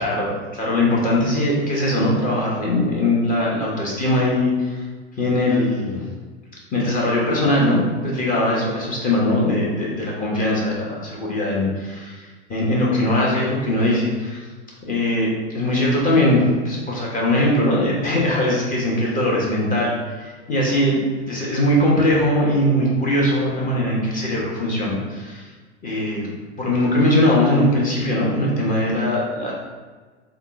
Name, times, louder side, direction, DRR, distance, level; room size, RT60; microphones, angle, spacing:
voice 1, 0.0-4.8 5.2-6.1 6.7-14.4 14.9-21.0 21.3-25.4 25.8-26.3 26.6-29.5, left 1 dB, 25° left, -4 dB, 1.2 m, -20 dB
3.6 x 2.4 x 4.0 m, 1.4 s
hypercardioid pair, 110°, 34 cm